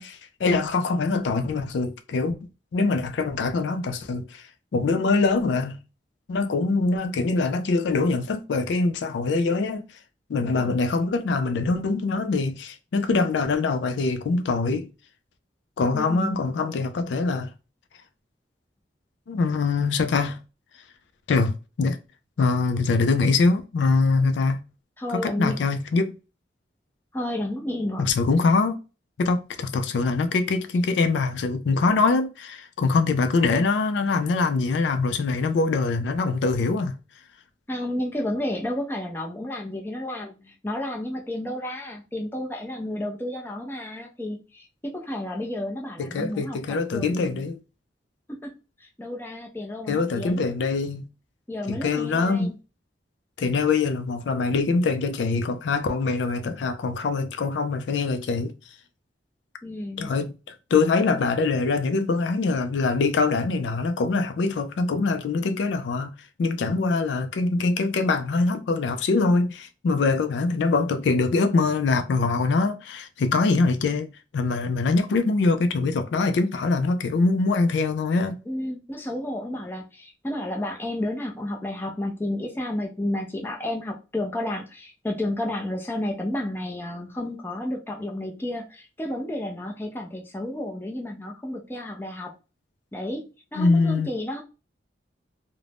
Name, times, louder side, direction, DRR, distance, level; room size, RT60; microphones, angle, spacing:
voice 1, 0.0-2.4 2.7-5.8 6.3-9.8 10.3-14.9 15.8-17.5 19.3-20.4 21.3-22.0 22.4-24.6 25.1-26.2 28.0-28.8 29.2-36.9 46.0-47.6 49.9-51.0 51.7-52.5 53.4-58.5 60.0-66.1 66.4-74.1 74.3-78.4 93.6-94.1, left 3 dB, 80° left, 0.4 m, -23 dB
voice 2, 10.4-10.8 15.9-16.4 25.0-25.6 27.1-28.2 37.7-47.5 48.3-50.4 51.5-52.5 59.6-60.1 78.5-92.3 92.9-93.3 93.5-94.4, left 1 dB, 10° left, 0.5 m, -31 dB
2.5 x 2.1 x 3.3 m
head